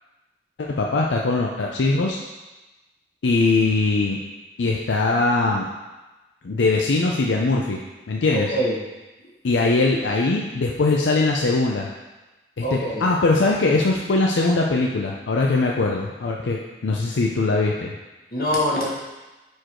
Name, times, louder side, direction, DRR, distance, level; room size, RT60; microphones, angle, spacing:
voice 1, 0.6-2.2 3.2-4.2 4.6-5.7 6.4-7.8 8.1-8.6 9.4-11.9 12.6-17.9, left 3 dB, 85° left, -1 dB, 0.5 m, -21 dB
voice 2, 8.3-8.7 12.6-13.0 18.3-18.9, equal, 55° left, -4 dB, 1.4 m, -23 dB
4.7 x 4.5 x 4.4 m, 1.1 s
head